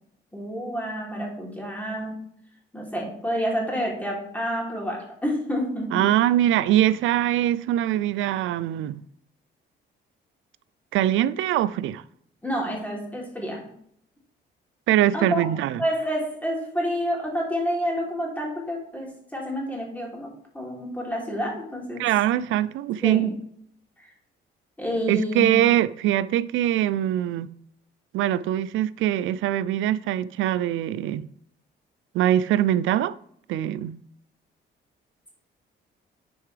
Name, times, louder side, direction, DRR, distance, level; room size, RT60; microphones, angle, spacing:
voice 1, 0.3-2.2 2.7-6.1 12.4-13.7 15.1-15.4 15.8-22.1 23.0-23.3 24.0-24.1 24.8-25.5, equal, 10° left, 3.1 m, -29 dB
voice 2, 5.9-9.0 10.9-12.0 14.9-15.8 22.0-23.3 25.1-27.5 28.1-31.3 32.1-33.2 33.5-34.0, right 12 dB, 85° right, 0.4 m, -23 dB
10.5 x 4.6 x 3.3 m
cardioid pair, 90°, 20 cm